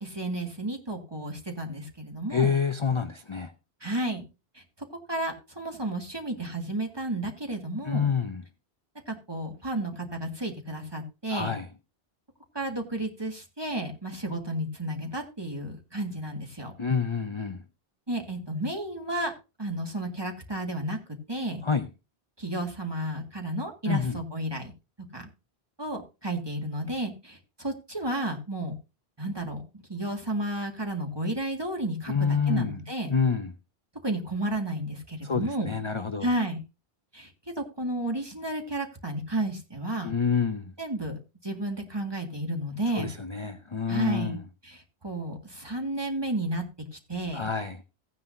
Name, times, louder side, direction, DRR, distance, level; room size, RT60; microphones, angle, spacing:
voice 1, 0.0-2.5 3.8-4.3 4.5-4.6 5.1-8.1 9.1-11.5 12.5-16.7 18.1-19.3 19.6-21.0 21.3-21.6 22.4-24.7 25.1-25.3 25.8-28.7 29.2-29.6 29.9-33.1 34.0-35.7 36.2-36.6 37.1-37.3 37.6-40.1 40.8-43.1 43.9-46.6 46.9-47.5, right 1 dB, 25° right, 1.9 m, -32 dB
voice 2, 2.3-3.5 7.8-8.4 11.3-11.7 16.8-17.6 21.6-21.9 23.9-24.2 32.1-32.8 33.1-33.5 35.2-36.3 40.0-40.7 42.9-44.4 47.3-47.8, left 6 dB, 35° left, 0.6 m, -27 dB
15.5 x 9.5 x 2.7 m
omnidirectional pair, 1.1 m